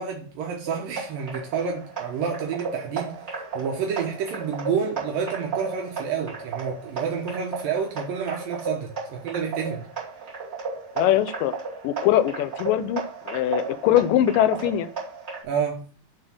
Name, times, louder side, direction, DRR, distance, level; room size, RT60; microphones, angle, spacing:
voice 1, 0.0-3.2 3.5-9.9 15.4-15.8, right 7 dB, 75° right, 2.7 m, -29 dB
sound 1, 0.6-15.4, right 4 dB, 20° right, 2.3 m, -34 dB
voice 2, 11.0-11.5 11.8-14.9, left 12 dB, 80° left, 2.2 m, -22 dB
7.8 x 4.0 x 6.1 m
omnidirectional pair, 4.2 m